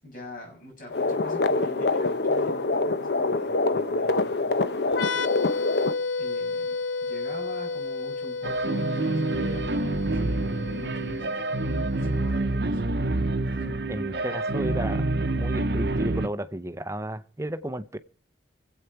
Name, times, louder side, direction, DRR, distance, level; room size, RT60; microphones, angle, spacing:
voice 1, 0.0-5.2 6.2-11.4 11.9-13.2 13.5-13.7, left 1 dB, 45° left, 7.0 m, -44 dB
sound 1, 0.9-6.0, left 3 dB, 60° left, 0.8 m, -25 dB
sound 2, 4.9-12.4, left 4 dB, 90° left, 0.9 m, -32 dB
sound 3, 8.4-16.3, right 2 dB, 60° right, 0.8 m, -27 dB
voice 2, 13.9-15.1 15.4-18.0, right 1 dB, 15° right, 0.6 m, -33 dB
24.5 x 8.2 x 4.6 m
head